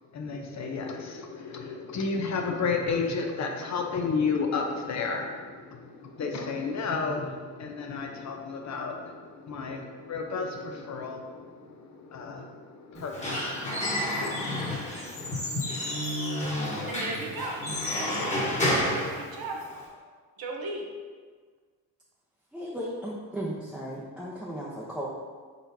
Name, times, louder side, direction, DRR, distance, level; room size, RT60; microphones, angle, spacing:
voice 1, 0.1-15.2, left 4 dB, 50° left, 3 dB, 0.7 m, -32 dB
Squeak / Wood, 13.0-19.9, left 1 dB, 20° left, 1.3 m, -30 dB
voice 2, 16.9-17.6 17.9-18.3 18.7-19.6 20.4-20.8, right 2 dB, 75° right, 1 dB, 0.9 m, -36 dB
voice 3, 22.5-25.1, equal, 5° right, -7 dB, 0.7 m, -35 dB
4.5 x 4.1 x 2.7 m, 1.5 s
cardioid pair, 80°, 37 cm